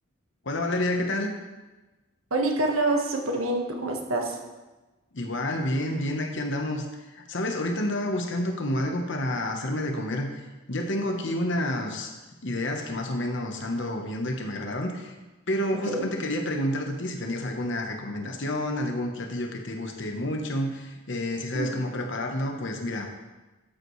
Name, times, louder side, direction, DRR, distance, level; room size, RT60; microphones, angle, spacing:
voice 1, 0.4-1.3 5.1-6.8 7.1-10.3 10.7-12.1 12.4-15.1 15.5-23.1, left 1 dB, 60° left, 3 dB, 1.0 m, -29 dB
voice 2, 2.3-4.4 15.9-16.1 21.5-21.8, right 2 dB, 90° right, 1 dB, 1.5 m, -26 dB
12.5 x 8.1 x 3.2 m, 1.1 s
head